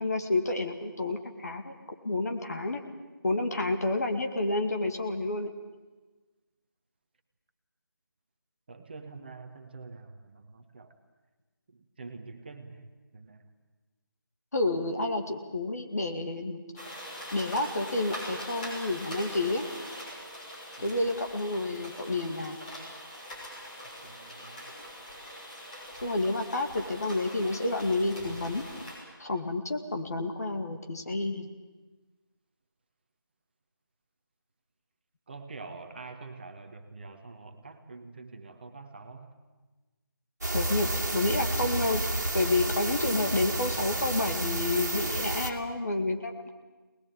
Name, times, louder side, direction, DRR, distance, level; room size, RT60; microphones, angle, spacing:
voice 1, 0.0-1.7 2.0-2.8 3.2-5.5 14.5-16.6 17.3-19.7 20.8-22.6 26.0-28.6 29.2-31.5 40.5-42.0 42.3-46.5, left 2 dB, 45° left, 4 dB, 2.3 m, -29 dB
voice 2, 8.7-10.9 11.7-13.5 20.8-20.9 24.0-24.7 35.3-39.3, right 3 dB, 25° right, 6 dB, 1.3 m, -46 dB
sound 1, 16.8-29.0, equal, 20° left, 6.3 m, -42 dB
sound 2, 40.4-45.5, right 2 dB, 50° right, 2.4 m, -31 dB
24.0 x 20.0 x 8.9 m, 1.2 s
figure-of-eight pair, 165°, 12 cm